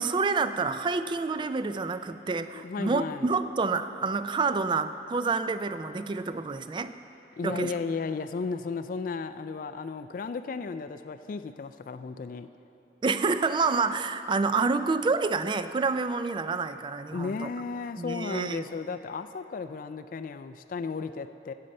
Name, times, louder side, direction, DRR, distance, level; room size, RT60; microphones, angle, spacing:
voice 1, 0.0-6.9 7.4-7.7 13.0-17.5 18.0-18.6, right 4 dB, 25° right, 11 dB, 0.3 m, -28 dB
voice 2, 2.5-3.3 7.4-12.5 17.1-21.5, left 4 dB, 50° left, 10 dB, 0.3 m, -34 dB
16.0 x 6.6 x 5.3 m, 2.9 s
head